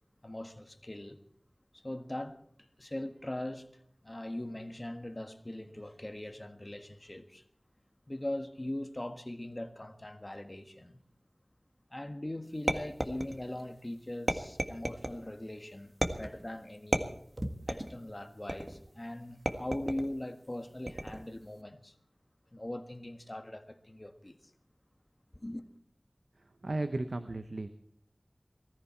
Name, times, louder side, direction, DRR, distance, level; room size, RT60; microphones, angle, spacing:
voice 1, 0.2-1.2 1.7-7.4 8.1-11.0 11.9-17.1 17.7-21.9 22.5-24.4 25.3-25.6, left 1 dB, 35° left, 1.5 m, -41 dB
sound 1, 12.7-13.6 14.3-15.2 16.0-16.5 16.9-18.0 18.5-18.9 19.5-20.1 20.9-21.3, right 1 dB, 40° right, 1.6 m, -33 dB
voice 2, 26.6-27.7, right 2 dB, 85° right, 0.8 m, -34 dB
20.0 x 14.0 x 4.4 m
wide cardioid pair, 45°, 0 cm